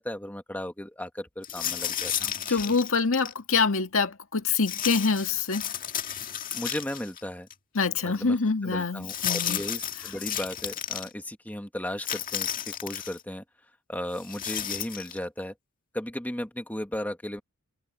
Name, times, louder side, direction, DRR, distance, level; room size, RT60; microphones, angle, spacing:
voice 1, 0.0-2.6 6.5-7.5 8.0-8.4 8.6-13.4 13.9-15.5 15.9-17.4, left 1 dB, 10° left, 1.7 m, -35 dB
sound 1, 1.4-3.4 4.7-7.2 7.5-7.6 9.0-11.1 12.0-13.2 14.2-15.2, left 9 dB, 40° left, 1.8 m, -33 dB
voice 2, 2.5-5.7 7.7-9.6, left 4 dB, 65° left, 2.0 m, -25 dB
head